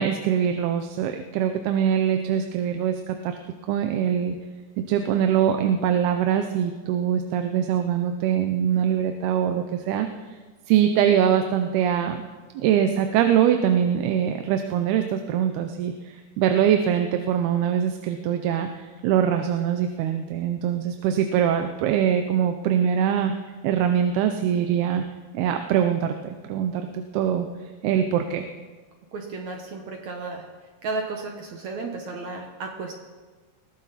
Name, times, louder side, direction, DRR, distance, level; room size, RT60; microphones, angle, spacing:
voice 1, 0.0-3.4 3.7-4.4 4.9-10.1 10.7-12.2 12.5-23.3 23.6-25.0 25.3-27.5 27.8-28.4, right 9 dB, 80° right, 6 dB, 2.7 m, -23 dB
voice 2, 29.1-30.4 30.8-32.9, right 3 dB, 60° right, 2 dB, 2.0 m, -33 dB
21.5 x 16.5 x 4.2 m, 1.4 s
omnidirectional pair, 4.5 m